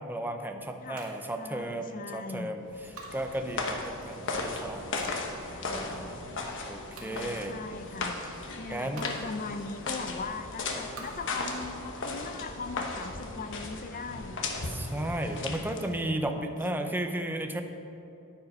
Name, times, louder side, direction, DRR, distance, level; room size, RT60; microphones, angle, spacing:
voice 1, 0.1-2.7 3.1-5.2 5.6-6.1 6.6-7.6 8.7-9.1 14.7-17.6, right 1 dB, 10° right, 5 dB, 0.6 m, -34 dB
sound 1, 1.0-15.5, right 3 dB, 80° right, 1.8 m, -53 dB
voice 2, 1.4-2.6 7.0-8.2 8.6-14.5 15.5-16.8, left 4 dB, 40° left, 10 dB, 0.5 m, -40 dB
sound 2, 2.7-16.0, left 3 dB, 60° left, 1.1 m, -36 dB
9.5 x 9.3 x 5.4 m, 2.8 s
head